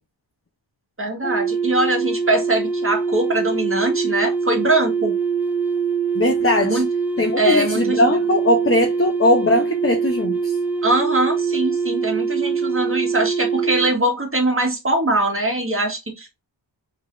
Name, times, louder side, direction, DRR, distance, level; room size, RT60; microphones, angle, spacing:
voice 1, 1.0-5.1 6.6-6.9 7.4-8.1 10.8-16.4, right 2 dB, 25° right, 1.7 m, -22 dB
sound 1, 1.2-13.9, right 5 dB, 5° right, 0.3 m, -23 dB
voice 2, 6.1-6.8 7.2-10.6, left 1 dB, 30° left, 0.9 m, -19 dB
4.9 x 3.3 x 2.6 m
wide cardioid pair, 85°, 47 cm